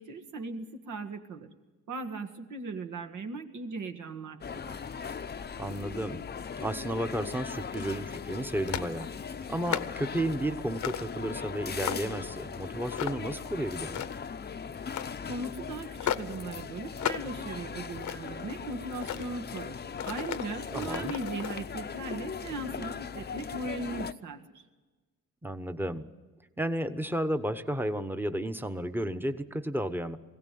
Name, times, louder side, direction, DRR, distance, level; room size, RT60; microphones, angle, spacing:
voice 1, 0.0-1.5 1.9-4.8 15.3-19.8 20.1-24.4, right 3 dB, 75° right, 4 dB, 1.9 m, -38 dB
sound 1, 4.4-24.1, left 6 dB, 30° left, 0.7 m, -39 dB
voice 2, 5.6-6.2 6.6-9.1 9.5-14.0 20.7-21.1 25.4-26.1 26.6-30.2, right 1 dB, 5° right, 9 dB, 1.1 m, -32 dB
sound 2, 7.5-8.0 8.7-8.9 9.4-10.0 10.8-11.1 11.5-12.2 12.9-13.4 13.8-14.3 14.8-15.2 16.0-16.4 17.0-17.3 17.7-18.4 18.9-19.3 19.9-21.6, left 10 dB, 65° left, 0.9 m, -35 dB
21.5 x 17.0 x 9.3 m, 1.3 s
cardioid pair, 100°, 31 cm